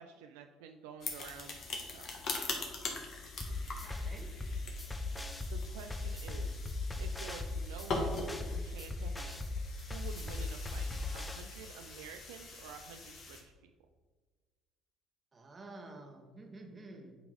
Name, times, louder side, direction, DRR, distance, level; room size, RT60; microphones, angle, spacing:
voice 1, 0.0-2.1 5.5-6.6 7.0-9.4 9.9-13.7, right 7 dB, 80° right, 6 dB, 0.3 m, -50 dB
sound 1, 1.0-13.4, left 3 dB, 50° left, 1.4 m, -43 dB
sound 2, 3.4-11.4, left 3 dB, 15° left, 0.7 m, -38 dB
voice 2, 3.6-4.3 15.3-17.1, right 2 dB, 30° right, 4 dB, 1.2 m, -50 dB
8.6 x 3.0 x 5.2 m, 1.4 s
hypercardioid pair, 60°, 0 cm